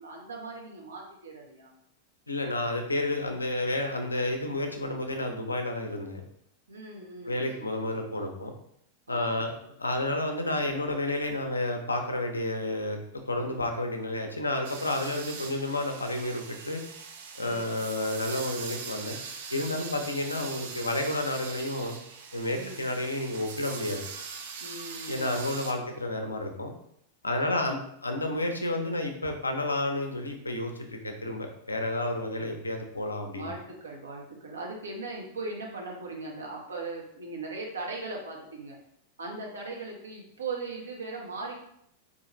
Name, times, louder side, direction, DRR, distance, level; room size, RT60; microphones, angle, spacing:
voice 1, 0.0-1.7 6.7-8.0 9.1-9.4 13.4-13.7 17.4-17.8 19.7-20.1 22.5-22.9 24.6-25.4 25.6-25.9 27.3-27.8 32.2-32.6 33.3-38.8 39.2-41.5, right 3 dB, 70° right, -1 dB, 1.0 m, -39 dB
voice 2, 2.3-6.2 7.2-8.5 9.1-9.5 9.8-13.0 13.3-16.8 17.4-19.2 19.5-22.0 22.3-24.0 25.1-26.7 27.2-33.5, left 1 dB, 80° left, 4 dB, 0.5 m, -31 dB
sound 1, 14.6-25.7, right 5 dB, 55° right, 0.5 m, -41 dB
4.0 x 3.1 x 3.0 m, 0.73 s
figure-of-eight pair, 90°, 0 cm